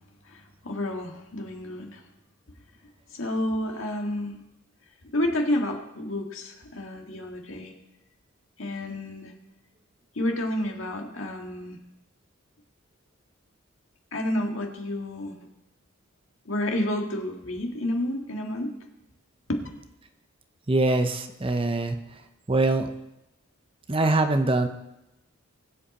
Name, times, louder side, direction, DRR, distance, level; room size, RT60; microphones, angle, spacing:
voice 1, 0.3-2.0 3.1-4.4 5.1-7.7 8.6-9.3 10.2-11.8 14.1-15.4 16.5-18.7 19.5-19.6, left 1 dB, 65° left, 2 dB, 1.8 m, -30 dB
voice 2, 20.7-22.0 22.5-22.9 23.9-24.7, right 2 dB, 25° right, 7 dB, 0.7 m, -23 dB
20.5 x 7.8 x 4.3 m, 0.91 s
head